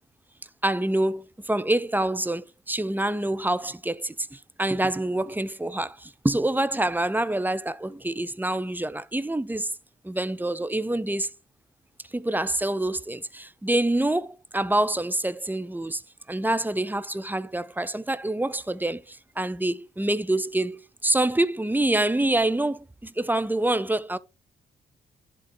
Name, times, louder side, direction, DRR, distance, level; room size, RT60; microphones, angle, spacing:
voice 1, 0.6-9.7 10.0-11.3 12.1-16.0 16.3-24.2, right 1 dB, 10° right, 0.5 m, -26 dB
10.5 x 3.7 x 3.0 m
hypercardioid pair, 40°, 21 cm